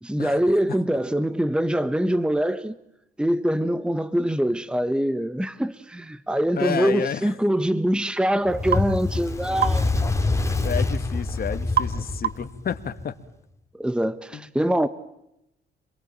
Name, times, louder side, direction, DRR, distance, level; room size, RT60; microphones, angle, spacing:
voice 1, 0.0-2.7 3.2-10.0 13.7-14.9, right 1 dB, 5° right, 1.2 m, -24 dB
voice 2, 6.5-7.3 10.6-13.1 14.3-14.4, left 8 dB, 50° left, 2.1 m, -30 dB
Fire, 8.5-13.0, left 3 dB, 15° left, 3.1 m, -26 dB
sound 1, 8.7-8.9 9.6-9.8 11.8-12.0 12.2-12.6, right 9 dB, 50° right, 1.1 m, -25 dB
27.5 x 22.5 x 8.9 m
cardioid pair, 90°, 20 cm